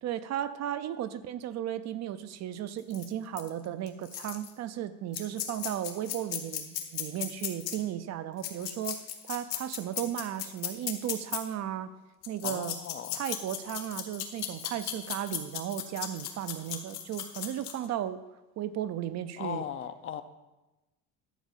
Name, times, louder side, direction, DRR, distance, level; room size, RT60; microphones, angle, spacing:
voice 1, 0.0-11.9 12.3-12.8 13.1-18.2 18.6-19.6, right 11 dB, 45° right, 13 dB, 0.5 m, -35 dB
sound 1, 2.9-3.1 3.4-3.5 3.9-4.5 5.1-7.8 8.4-11.4 12.2-17.9, left 12 dB, 70° left, 1.5 m, -36 dB
voice 2, 12.4-13.2 19.4-20.2, left 9 dB, 35° left, 11 dB, 0.5 m, -38 dB
11.0 x 5.0 x 7.2 m, 1.1 s
cardioid pair, 155°, 38 cm